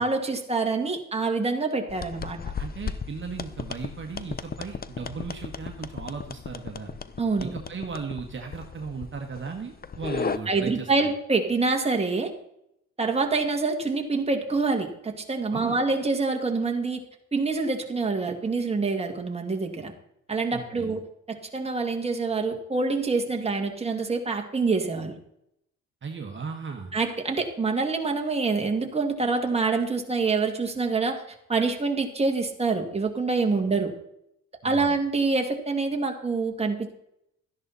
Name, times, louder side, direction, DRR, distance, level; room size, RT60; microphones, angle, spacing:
voice 1, 0.0-2.4 7.2-7.5 10.5-12.3 13.0-17.0 17.3-19.9 20.3-21.0 21.3-25.2 26.9-31.2 31.5-33.9 34.6-36.9, right 3 dB, 20° right, 3 dB, 2.2 m, -26 dB
sound 1, 1.9-10.4, left 6 dB, 30° left, 0.8 m, -36 dB
voice 2, 2.6-6.9 7.4-11.1 15.5-15.8 20.5-20.9 26.0-26.9 34.6-35.0, right 5 dB, 40° right, 3 dB, 1.7 m, -36 dB
13.5 x 10.5 x 4.2 m, 0.78 s
cardioid pair, 90°, 30 cm